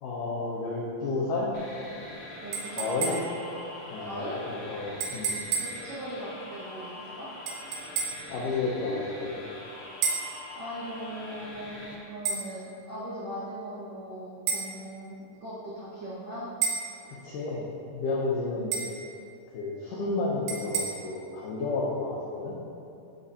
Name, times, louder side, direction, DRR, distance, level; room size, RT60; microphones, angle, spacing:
voice 1, 0.0-1.5 2.8-3.1 3.9-5.3 8.3-9.4 17.1-17.6 17.9-18.9 19.5-22.6, left 3 dB, 85° left, -5 dB, 1.9 m, -31 dB
sound 1, 1.5-11.9, left 1 dB, 65° left, 1.4 m, -44 dB
voice 2, 2.4-3.2 4.0-4.4 5.0-5.3 5.5-7.9 10.0-15.1 15.4-16.5 18.5-18.9, equal, 70° right, -11 dB, 1.1 m, -40 dB
sound 2, 2.5-3.5 5.0-5.8 7.5-8.3 10.0-10.4 12.3-12.5 14.5-14.7 16.6-16.9 18.7-19.0 20.5-20.8, right 5 dB, 90° right, 3.0 m, -31 dB
13.5 x 4.9 x 2.8 m, 2.6 s
omnidirectional pair, 4.8 m